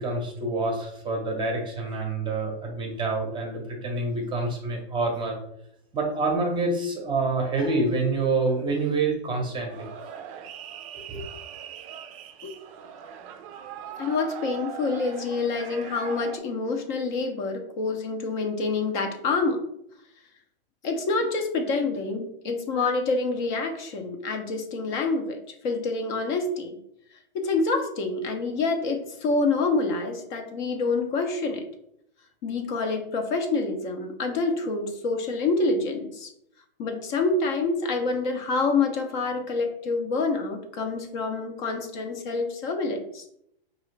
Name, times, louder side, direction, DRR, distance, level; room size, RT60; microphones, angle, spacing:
voice 1, 0.0-5.4 5.9-9.9 11.1-11.2, right 3 dB, 15° right, 1 dB, 0.7 m, -27 dB
sound 1, 9.7-16.4, right 9 dB, 35° right, 0.4 m, -40 dB
voice 2, 14.0-19.6 20.8-26.8 27.3-31.6 32.4-36.3 36.8-43.2, left 3 dB, 50° left, 4 dB, 0.8 m, -27 dB
4.7 x 2.5 x 3.2 m, 0.75 s
hypercardioid pair, 135°, 31 cm